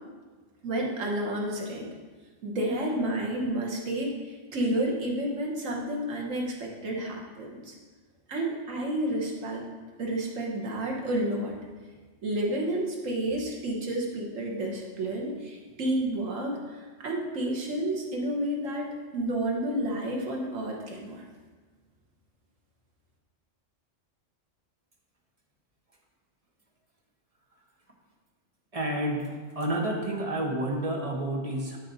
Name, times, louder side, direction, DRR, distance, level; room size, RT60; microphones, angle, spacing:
voice 1, 0.6-1.9 2.4-7.7 8.3-9.6 10.0-11.6 12.2-21.2, right 1 dB, 85° right, -1 dB, 1.6 m, -30 dB
voice 2, 28.7-29.3 29.5-31.8, right 1 dB, 30° right, -1 dB, 1.1 m, -29 dB
12.0 x 4.2 x 4.1 m, 1.4 s
omnidirectional pair, 1.3 m